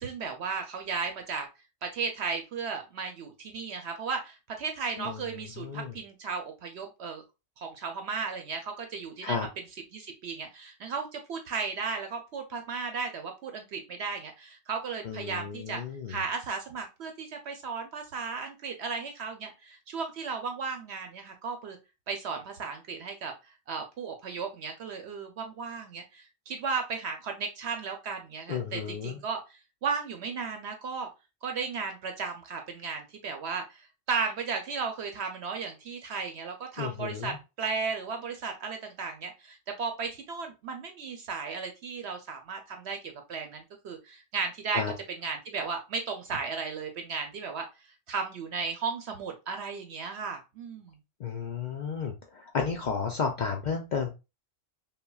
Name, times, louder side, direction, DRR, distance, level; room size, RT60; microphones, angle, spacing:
voice 1, 0.0-1.5 1.8-7.2 7.6-9.5 9.9-15.8 16.1-21.8 22.1-23.3 23.7-31.1 31.4-44.8 45.2-47.7 48.1-51.0, right 5 dB, 65° right, 5 dB, 0.8 m, -35 dB
voice 2, 5.6-5.9 9.2-9.5 15.0-16.2 28.5-29.2 36.8-37.4 44.7-44.9 51.2-54.1, left 6 dB, 65° left, 2 dB, 0.4 m, -32 dB
5.5 x 2.2 x 2.3 m, 0.27 s
omnidirectional pair, 1.3 m